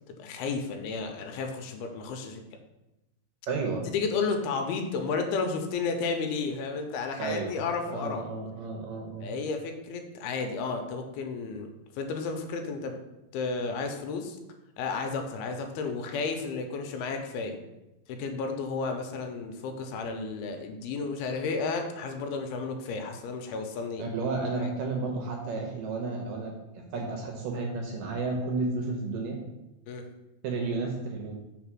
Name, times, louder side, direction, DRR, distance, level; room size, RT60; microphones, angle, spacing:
voice 1, 0.1-2.4 3.8-8.2 9.2-13.0 13.3-14.4 14.8-17.6 18.1-24.0 24.6-24.7 29.9-30.1, left 4 dB, 85° left, 5 dB, 2.6 m, -32 dB
voice 2, 3.5-3.9 7.2-7.6 7.9-9.3 24.0-26.5 26.9-29.4 30.4-31.3, right 3 dB, 75° right, 1 dB, 2.2 m, -32 dB
5.5 x 4.1 x 6.0 m, 0.97 s
omnidirectional pair, 4.5 m